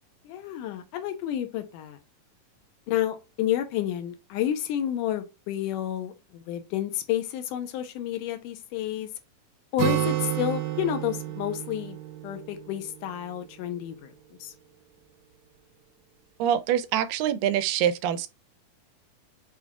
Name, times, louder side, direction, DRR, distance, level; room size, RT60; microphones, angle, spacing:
voice 1, 0.3-2.0 2.9-9.1 9.7-12.0 12.2-14.1 14.4-14.5, left 11 dB, 85° left, 2.2 m, -30 dB
Acoustic guitar, 9.8-13.5, right 11 dB, 70° right, 2.0 m, -30 dB
voice 2, 16.4-18.3, right 10 dB, 90° right, 2.2 m, -25 dB
6.2 x 3.5 x 2.3 m
omnidirectional pair, 3.8 m